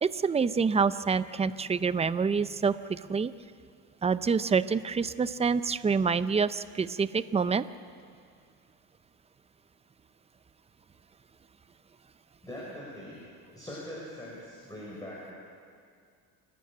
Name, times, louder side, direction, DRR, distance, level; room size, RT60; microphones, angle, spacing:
voice 1, 0.0-2.8 3.1-3.3 4.0-7.6, right 5 dB, 15° right, 14 dB, 0.6 m, -27 dB
voice 2, 12.4-15.3, left 1 dB, 10° left, -5 dB, 5.5 m, -42 dB
29.0 x 12.5 x 8.7 m, 2.2 s
cardioid pair, 115°, 36 cm